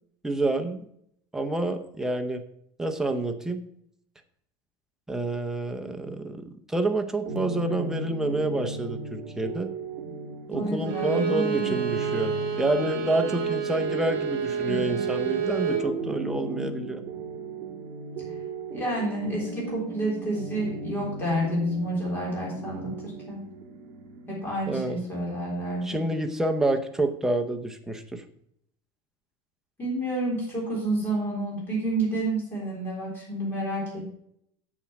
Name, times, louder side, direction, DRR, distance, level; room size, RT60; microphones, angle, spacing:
voice 1, 0.2-0.8 1.3-2.4 2.8-3.6 5.1-9.7 10.5-17.0 24.7-25.0 25.8-28.2, right 2 dB, 5° right, 4 dB, 0.6 m, -28 dB
sound 1, 7.2-26.8, right 3 dB, 40° right, 1.9 m, -36 dB
voice 2, 10.5-11.7 18.7-23.4 24.3-26.0 29.8-34.1, right 1 dB, 15° left, -4 dB, 3.7 m, -29 dB
Bowed string instrument, 10.8-15.9, right 7 dB, 65° right, 2.5 m, -29 dB
7.6 x 7.2 x 5.8 m, 0.72 s
cardioid pair, 170°, 12 cm